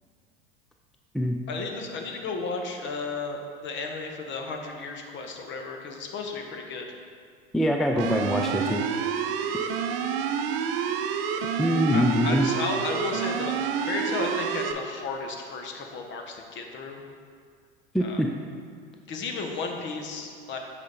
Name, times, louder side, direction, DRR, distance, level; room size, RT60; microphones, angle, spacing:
voice 1, 1.5-7.0 11.9-17.0 18.0-18.2 19.1-20.6, left 4 dB, 40° left, 3 dB, 1.1 m, -34 dB
voice 2, 7.5-8.8 11.6-12.5 17.9-18.3, equal, ahead, 2 dB, 0.4 m, -23 dB
sound 1, 8.0-14.7, right 7 dB, 65° right, 0.6 m, -28 dB
8.2 x 5.3 x 4.1 m, 2.1 s
hypercardioid pair, 85°, 30 cm